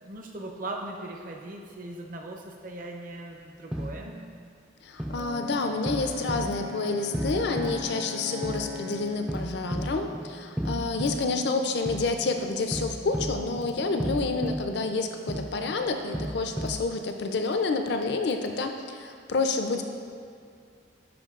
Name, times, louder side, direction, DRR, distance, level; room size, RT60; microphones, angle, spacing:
voice 1, 0.0-4.2, right 2 dB, 45° right, 2 dB, 0.6 m, -39 dB
sound 1, 3.7-4.5 5.0-16.9, equal, 5° right, 0.3 m, -35 dB
voice 2, 4.8-19.8, left 3 dB, 60° left, 5 dB, 0.5 m, -29 dB
Brass instrument, 5.1-9.3, left 2 dB, 65° right, 1.2 m, -40 dB
11.0 x 4.5 x 2.4 m, 2.4 s
head